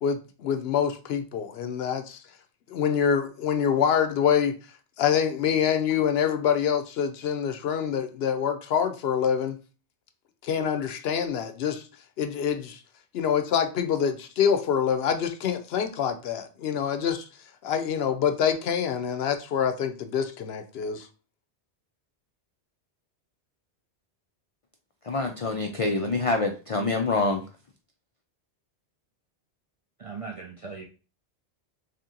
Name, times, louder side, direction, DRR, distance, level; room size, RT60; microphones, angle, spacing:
voice 1, 0.0-2.2 2.7-4.6 5.0-9.6 10.4-11.8 12.2-12.8 13.1-17.2 17.6-21.1, left 8 dB, 70° left, 0.8 m, -26 dB
voice 2, 25.1-27.4, left 3 dB, 55° left, 0.4 m, -26 dB
voice 3, 30.0-30.8, right 4 dB, 55° right, 0.3 m, -38 dB
3.3 x 2.9 x 3.7 m
omnidirectional pair, 1.1 m